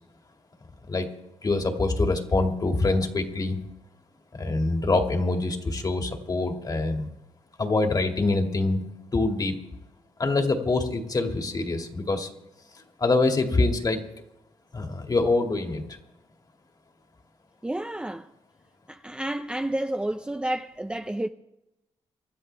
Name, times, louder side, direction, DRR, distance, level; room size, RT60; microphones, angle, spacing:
voice 1, 1.4-3.6 4.4-7.1 7.6-8.8 9.1-9.6 10.2-12.3 13.0-14.0 14.7-16.0, left 2 dB, 35° left, 2.2 m, -25 dB
voice 2, 17.6-18.3 18.9-21.3, right 1 dB, 10° right, 0.6 m, -30 dB
25.0 x 12.5 x 3.4 m
cardioid pair, 75°, 11 cm